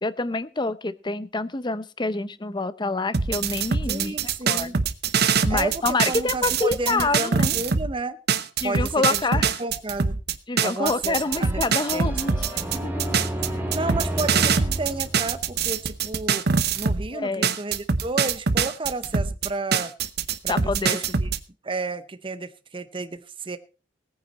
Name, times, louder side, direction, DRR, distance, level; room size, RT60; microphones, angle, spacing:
voice 1, 0.0-4.2 4.5-4.8 5.4-7.6 8.6-9.6 10.5-13.2 17.1-17.6 20.5-21.2, left 3 dB, 25° left, 15 dB, 0.7 m, -27 dB
sound 1, 3.1-7.9 8.3-17.1 17.4-21.4, right 5 dB, 60° right, 0.8 m, -24 dB
voice 2, 3.9-4.7 5.5-8.2 8.6-9.2 9.6-10.2 10.6-11.6 11.9-12.4 13.4-16.4 16.8-19.9 20.4-21.3 21.6-23.6, right 3 dB, 30° right, 11 dB, 0.8 m, -32 dB
sound 2, 11.2-16.0, right 1 dB, 10° right, 2.6 m, -32 dB
18.0 x 9.6 x 4.1 m, 0.35 s
head